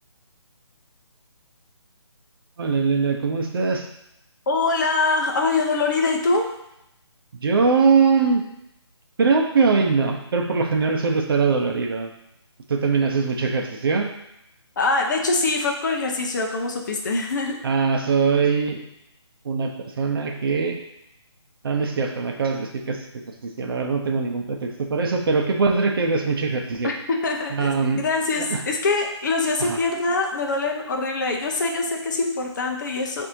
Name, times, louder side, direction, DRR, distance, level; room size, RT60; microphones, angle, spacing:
voice 1, 2.6-3.9 7.4-8.4 9.2-12.1 12.7-14.1 17.6-18.8 19.4-19.7 20.0-20.8 21.6-23.0 23.4-26.9 27.5-28.0 28.4-28.6 29.6-29.8, right 4 dB, 50° right, 2 dB, 0.7 m, -22 dB
voice 2, 4.5-6.5 14.8-17.6 26.8-33.3, left 3 dB, 40° left, 2 dB, 0.7 m, -24 dB
7.1 x 2.7 x 2.6 m, 0.83 s
figure-of-eight pair, 150°, 15 cm